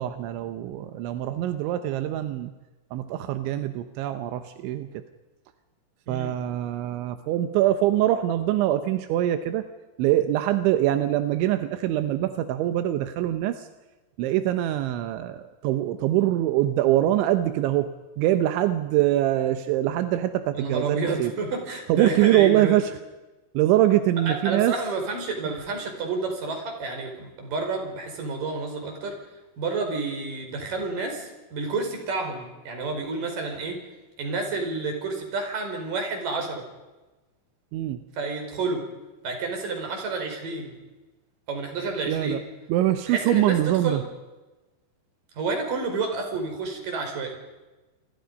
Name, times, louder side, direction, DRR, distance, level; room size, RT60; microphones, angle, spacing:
voice 1, 0.0-2.5 2.9-4.9 6.1-9.7 10.0-13.7 14.2-17.9 18.2-21.3 21.9-23.0 23.5-24.8 37.7-38.0 42.1-42.4 42.7-44.0, right 13 dB, 85° right, 9 dB, 3.4 m, -23 dB
voice 2, 20.5-22.8 24.3-29.1 29.6-33.8 34.2-36.6 38.2-38.8 39.2-40.7 41.5-42.4 43.1-43.6 43.8-44.0 45.4-47.3, right 3 dB, 50° right, 3 dB, 6.2 m, -30 dB
28.5 x 23.0 x 5.4 m, 1.1 s
omnidirectional pair, 5.2 m